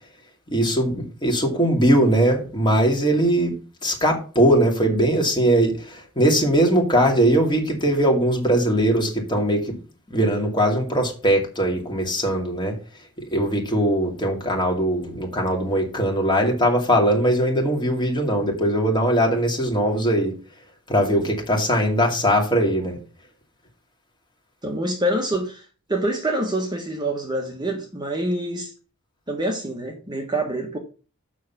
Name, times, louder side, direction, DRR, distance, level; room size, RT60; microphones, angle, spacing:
voice 1, 0.5-3.5 3.8-9.8 10.1-12.7 13.3-20.3 20.9-23.0, right 1 dB, 20° left, 2.4 m, -20 dB
voice 2, 24.6-25.6 25.9-28.7 29.3-30.8, right 1 dB, 20° right, 1.4 m, -26 dB
7.5 x 6.0 x 5.8 m
head